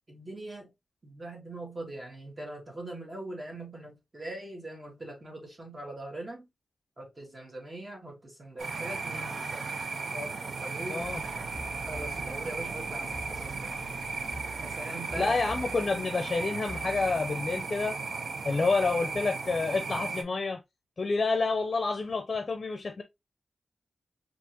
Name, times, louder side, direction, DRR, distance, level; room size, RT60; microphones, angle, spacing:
voice 1, 0.1-0.7 1.0-6.5 7.0-9.7 10.1-11.1 11.9-13.7 14.6-15.4, right 1 dB, 25° right, 1.8 m, -41 dB
sound 1, 8.6-20.2, right 4 dB, 85° right, 0.6 m, -36 dB
voice 2, 10.9-11.2 15.2-18.0 18.4-20.6 21.0-23.0, left 3 dB, 45° left, 0.6 m, -28 dB
sound 2, 11.0-16.2 16.7-17.5 17.8-17.9, equal, 60° right, 2.1 m, -45 dB
4.3 x 2.9 x 2.8 m
wide cardioid pair, 130°, 0 cm